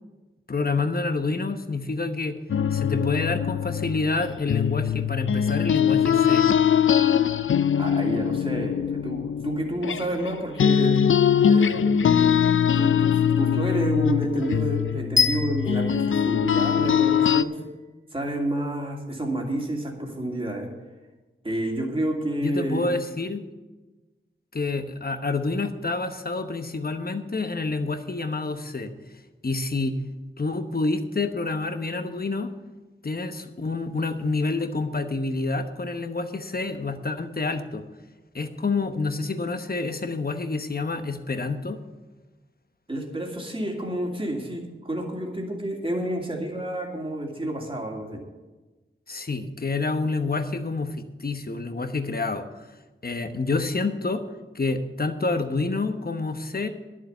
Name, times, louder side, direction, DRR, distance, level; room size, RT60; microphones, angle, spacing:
voice 1, 0.5-2.4 2.7-6.5 22.4-23.4 24.5-28.9 29.4-29.9 30.4-32.5 33.0-37.8 38.3-41.8 49.1-52.5 53.0-54.2 54.5-56.7, left 3 dB, 45° left, 8 dB, 1.1 m, -28 dB
sound 1, 2.5-10.3 10.6-17.4, left 8 dB, 75° left, 0.4 m, -22 dB
voice 2, 7.7-11.0 11.5-17.6 18.1-20.7 21.4-22.9 42.9-48.2, right 1 dB, 25° right, 0 dB, 2.6 m, -29 dB
sound 2, 15.2-17.2, left 5 dB, 50° right, 4.2 m, -26 dB
11.0 x 7.4 x 7.8 m, 1.2 s
wide cardioid pair, 65°, 21 cm